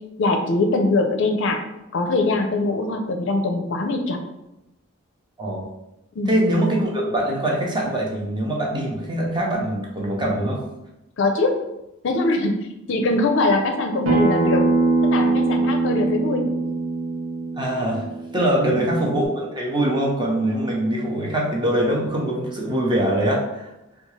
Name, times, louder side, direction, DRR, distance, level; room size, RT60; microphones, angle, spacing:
voice 1, 0.2-1.6 1.9-4.2 6.1-6.4 11.2-11.5 12.0-12.6 12.9-14.6 15.1-16.5 18.7-18.8, left 2 dB, 60° left, 5 dB, 0.4 m, -22 dB
voice 2, 6.3-10.6 17.6-18.1 18.3-23.7, right 1 dB, 20° right, -2 dB, 0.6 m, -23 dB
Acoustic guitar, 14.1-19.3, right 3 dB, 65° right, 0.8 m, -22 dB
3.6 x 2.3 x 3.1 m, 0.90 s
head